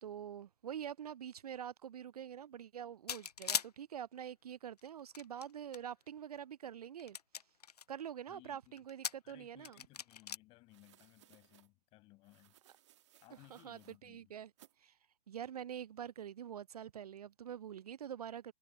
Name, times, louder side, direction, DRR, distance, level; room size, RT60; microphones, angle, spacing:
voice 1, 0.0-7.2 7.9-9.8 13.5-14.5 14.8-15.0 15.3-18.5, right 9 dB, 75° right, 0.4 m, -46 dB
sound 1, 3.1-3.7 4.8-5.8 6.4-6.5 7.0-7.8 8.8-9.3 9.6-10.4, left 8 dB, 80° left, 0.6 m, -39 dB
voice 2, 8.3-8.8 9.2-12.5 13.2-14.4, left 21 dB, 25° left, 5.5 m, -62 dB
sound 2, 9.9-10.0 10.7-11.7 12.2-14.0 14.6-14.8, right 13 dB, 45° right, 1.7 m, -66 dB
hypercardioid pair, 135°, 20 cm